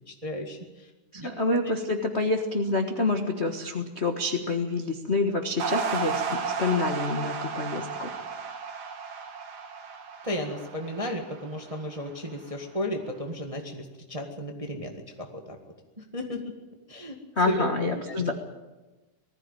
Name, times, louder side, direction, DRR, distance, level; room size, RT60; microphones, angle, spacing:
voice 1, 0.1-0.6 1.1-1.3 10.2-14.9 15.2-15.6 16.1-16.4 16.9-17.2 17.4-17.6 17.9-18.3, left 1 dB, 15° right, 2 dB, 1.1 m, -33 dB
voice 2, 1.1-8.1 17.4-18.3, left 3 dB, 40° left, 4 dB, 0.9 m, -27 dB
sound 1, 5.6-12.1, right 5 dB, 65° right, 3.2 m, -33 dB
19.5 x 15.0 x 9.0 m, 1.1 s
omnidirectional pair, 3.5 m